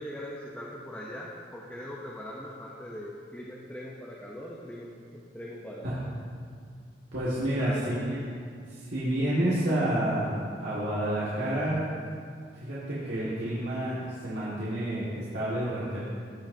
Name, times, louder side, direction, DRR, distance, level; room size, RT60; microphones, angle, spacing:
voice 1, 0.0-5.9 7.6-8.2, equal, 10° left, -5 dB, 0.6 m, -41 dB
voice 2, 7.1-8.2 8.7-11.8 12.5-16.0, right 1 dB, 85° right, -10 dB, 1.7 m, -29 dB
14.5 x 6.3 x 2.7 m, 2.2 s
head